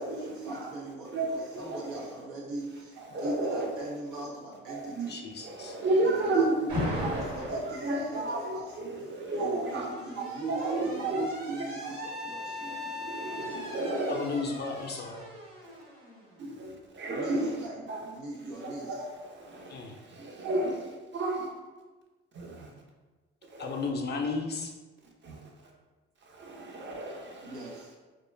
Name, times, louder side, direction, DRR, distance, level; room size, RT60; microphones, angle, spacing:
voice 1, 0.0-5.1 6.0-8.7 9.3-12.6 17.1-19.0 27.4-27.9, right 2 dB, 90° right, -5 dB, 0.8 m, -40 dB
voice 2, 1.1-1.8 3.1-3.7 4.7-5.1 5.4-6.7 7.0-9.9 10.2-11.3 11.8-11.9 12.6-14.3 16.4-17.6 17.9-18.0 18.6-21.5 22.3-22.7 23.5-23.8 25.2-25.4 26.3-27.6, right 2 dB, 40° right, 0 dB, 0.7 m, -32 dB
voice 3, 5.1-5.8 14.1-15.3 19.7-20.0 23.6-24.7, left 4 dB, 35° left, 2 dB, 0.4 m, -34 dB
Alarm, 6.7-7.7 8.9-16.6, left 1 dB, 75° right, 1.2 m, -38 dB
2.3 x 2.2 x 3.2 m, 1.3 s
supercardioid pair, 60°, 29 cm